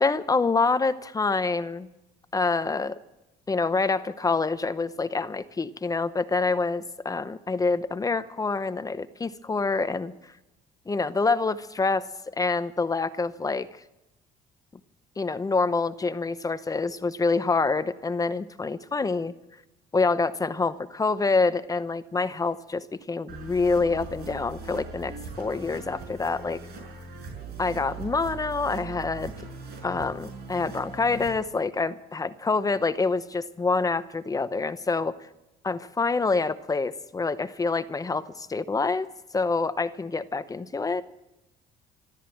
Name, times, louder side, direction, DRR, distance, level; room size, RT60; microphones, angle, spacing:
voice 1, 0.0-1.9 2.3-3.0 3.5-10.1 10.9-12.1 12.4-13.7 15.2-19.3 19.9-26.6 27.6-29.3 29.8-35.2 35.6-39.1 39.3-41.0, left 4 dB, 20° left, 13 dB, 0.8 m, -26 dB
sound 1, 23.3-31.3, right 4 dB, 70° right, 5.7 m, -40 dB
14.0 x 13.5 x 7.8 m, 0.94 s
cardioid pair, 110°, 17 cm